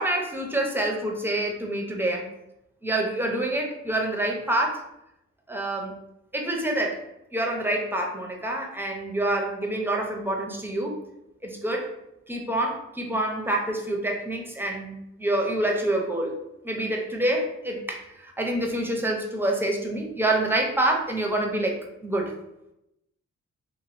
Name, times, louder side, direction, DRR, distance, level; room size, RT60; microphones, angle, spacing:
voice 1, 0.0-2.3 2.8-4.8 5.5-5.9 6.3-7.0 7.3-10.9 11.4-11.9 12.3-16.4 16.6-22.3, right 1 dB, 5° right, 0 dB, 0.6 m, -27 dB
3.0 x 2.6 x 2.5 m, 0.84 s
cardioid pair, 70°, 29 cm